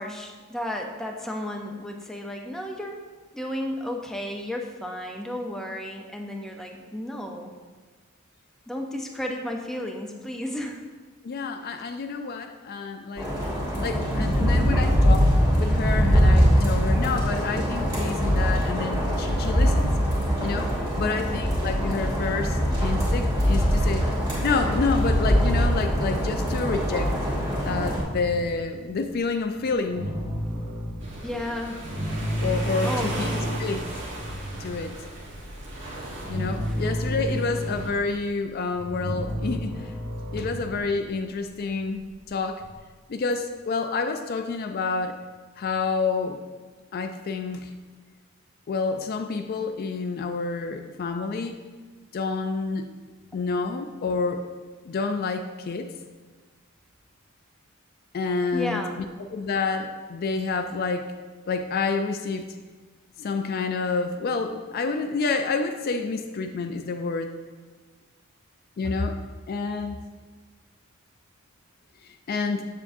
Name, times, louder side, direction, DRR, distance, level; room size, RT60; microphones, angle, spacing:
voice 1, 0.0-3.0 3.3-7.5 8.7-10.8 21.0-21.2 31.2-31.8 32.8-33.5 36.7-36.8 37.3-37.6 58.5-58.9, left 1 dB, ahead, 1 dB, 0.6 m, -33 dB
voice 2, 11.2-13.3 13.8-15.3 15.5-19.9 20.4-20.7 21.0-24.0 24.4-27.1 27.6-30.1 32.4-33.3 33.6-33.8 34.6-34.9 36.3-39.9 40.3-42.7 43.1-45.2 45.6-46.4 46.9-47.7 48.7-51.6 52.1-52.9 53.3-54.4 54.8-55.9 58.1-59.0 59.3-61.1 61.5-62.5 63.2-67.3 68.8-69.2 69.5-70.0 72.3-72.7, left 4 dB, 45° left, 6 dB, 0.3 m, -28 dB
sound 1, 13.2-28.0, equal, 20° right, 1.6 m, -22 dB
sound 2, 28.2-31.3 31.8-42.7, equal, 35° right, 1.9 m, -32 dB
sound 3, 31.0-37.9, right 1 dB, 60° right, 1.3 m, -37 dB
7.2 x 7.0 x 2.6 m, 1.4 s
head